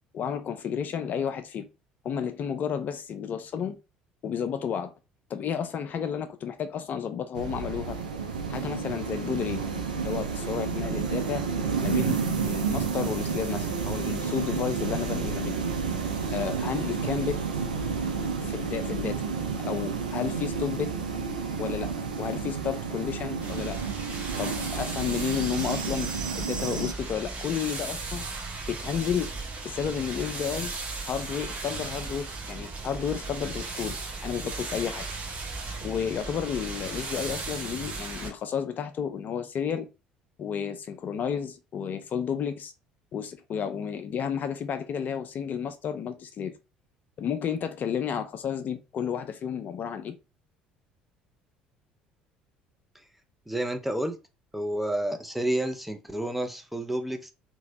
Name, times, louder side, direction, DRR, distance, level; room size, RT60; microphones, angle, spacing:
voice 1, 0.1-1.7 2.0-3.8 4.2-4.9 5.3-8.0 8.5-9.6 10.0-11.5 11.8-15.6 16.3-17.4 18.4-19.2 19.6-20.9 21.6-23.8 24.4-26.1 26.3-28.2 28.7-29.3 29.6-30.7 31.1-34.0 34.2-35.1 35.8-39.9 40.4-42.7 43.1-46.5 47.2-50.2, left 7 dB, 45° left, 0.4 m, -32 dB
sound 1, 7.3-26.9, right 5 dB, 85° right, 0.5 m, -31 dB
sound 2, 23.4-38.3, right 3 dB, 35° right, 1.2 m, -36 dB
voice 2, 53.5-54.2 54.5-57.3, right 1 dB, 5° right, 0.6 m, -30 dB
2.9 x 2.8 x 2.6 m
figure-of-eight pair, 60°, 4 cm